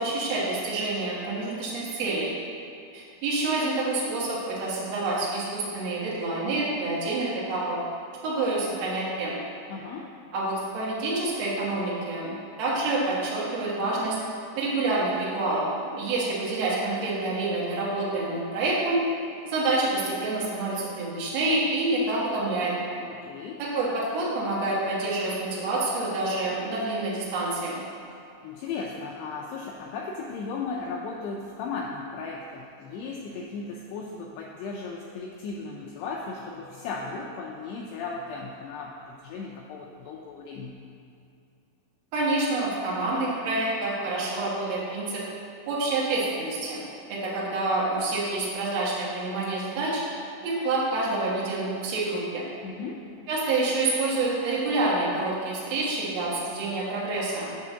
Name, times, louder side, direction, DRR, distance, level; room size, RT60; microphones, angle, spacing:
voice 1, 0.0-2.3 2.9-7.8 8.2-9.3 10.3-14.1 14.6-19.0 19.4-22.7 23.6-27.8 42.1-45.2 45.7-46.8 47.1-50.0 50.4-52.5 53.3-57.5, right 2 dB, 85° right, -7 dB, 1.4 m, -27 dB
voice 2, 9.7-10.1 23.0-23.6 28.4-40.8 52.6-53.1, left 4 dB, 85° left, -1 dB, 2.3 m, -36 dB
8.7 x 3.6 x 6.8 m, 2.6 s
omnidirectional pair, 5.3 m